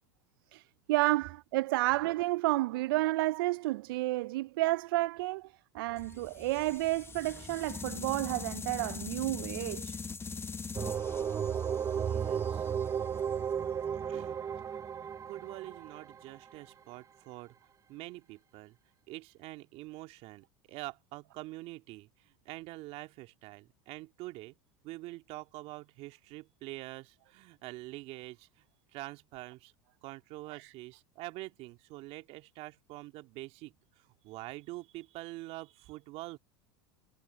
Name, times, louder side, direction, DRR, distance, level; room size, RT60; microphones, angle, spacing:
voice 1, 0.5-10.0 30.5-30.6, right 19 dB, 70° right, 0.5 m, -31 dB
sound 1, 6.0-14.1, left 5 dB, 20° left, 0.9 m, -43 dB
sound 2, 10.8-16.4, right 8 dB, 25° right, 0.6 m, -34 dB
voice 2, 12.0-12.7 14.1-14.4 14.7-14.8 15.3-17.6 17.9-18.8 19.1-24.6 24.8-28.5 28.9-29.7 30.0-36.4, right 20 dB, 55° right, 2.0 m, -45 dB
hypercardioid pair, 85°, 12 cm